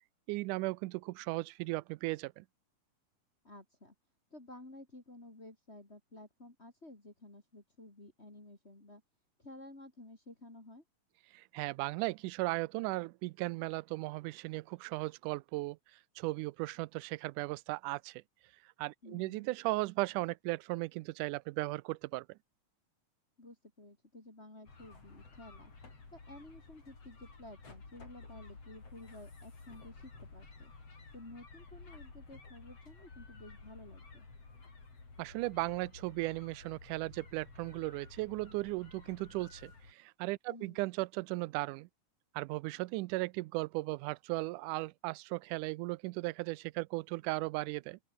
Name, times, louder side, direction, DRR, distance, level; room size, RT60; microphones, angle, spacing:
voice 1, 0.3-2.5 11.3-18.2 18.8-22.4 35.2-41.9 42.3-48.0, right 21 dB, 80° right, 2.0 m, -36 dB
voice 2, 3.4-3.9 4.3-9.0 9.4-10.8 19.0-19.5 23.4-25.7 26.1-30.7 31.1-34.3 40.5-40.9, left 1 dB, 20° left, 3.3 m, -53 dB
sound 1, 24.7-39.9, left 3 dB, 50° left, 6.6 m, -53 dB
open air
omnidirectional pair, 3.7 m